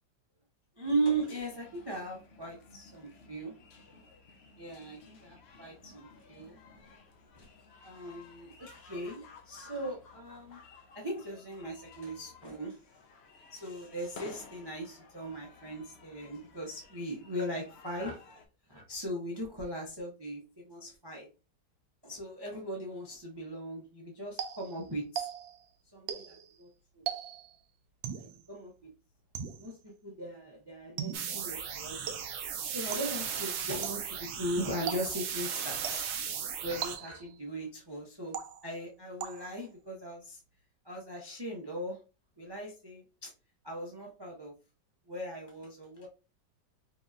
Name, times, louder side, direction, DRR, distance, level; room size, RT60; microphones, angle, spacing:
voice 1, 0.8-3.5 4.6-6.9 7.3-7.5 7.8-10.6 10.9-12.8 13.5-18.2 18.7-21.3 22.0-25.3 25.9-26.7 26.9-27.0 28.2-28.9 29.6-32.1 32.7-36.0 36.6-38.4 38.6-40.4 40.8-42.0 42.4-43.3 43.6-44.5 45.1-46.1, right 1 dB, 30° right, -1 dB, 0.4 m, -38 dB
sound 1, 1.5-18.5, left 4 dB, 70° left, 0.6 m, -55 dB
sound 2, 24.4-25.7 26.1-26.5 27.1-27.6 28.0-28.4 29.3-29.8 31.0-31.4 32.1-32.5 32.9-33.3 33.8-34.2 34.9-35.4 35.8-36.3 36.8-37.4 38.3-38.8 39.2-39.7, right 9 dB, 90° right, 1.3 m, -40 dB
sound 3, 31.1-37.0, right 7 dB, 70° right, 0.7 m, -36 dB
4.6 x 2.8 x 2.4 m, 0.31 s
omnidirectional pair, 2.0 m